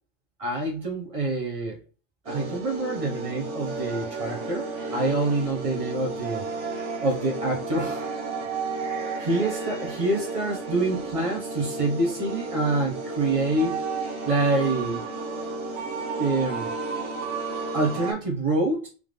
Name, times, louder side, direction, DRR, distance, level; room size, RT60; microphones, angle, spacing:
voice 1, 0.4-1.8 2.2-4.6 4.9-6.4 7.0-8.1 9.2-13.8 14.3-15.0 16.2-16.7 17.7-18.9, right 2 dB, 30° right, 1.4 m, -26 dB
sound 1, 2.3-18.1, right 3 dB, 75° right, 1.7 m, -32 dB
3.6 x 3.6 x 3.4 m
omnidirectional pair, 1.2 m